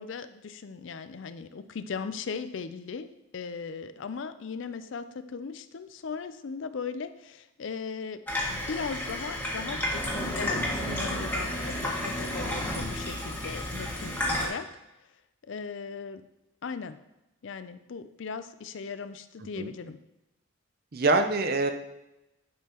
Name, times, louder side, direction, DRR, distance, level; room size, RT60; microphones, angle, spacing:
voice 1, 0.0-3.1 3.3-8.2 8.5-14.7 15.4-16.2 16.6-17.0 17.4-20.0, left 5 dB, 65° left, 12 dB, 0.4 m, -38 dB
Water tap faucet / Sink (filling or washing), 8.3-14.5, left 1 dB, 10° left, 1.5 m, -31 dB
voice 2, 10.9-11.3 19.6-19.7 20.9-21.7, right 3 dB, 45° right, 7 dB, 0.6 m, -26 dB
10.5 x 5.6 x 2.9 m, 0.94 s
head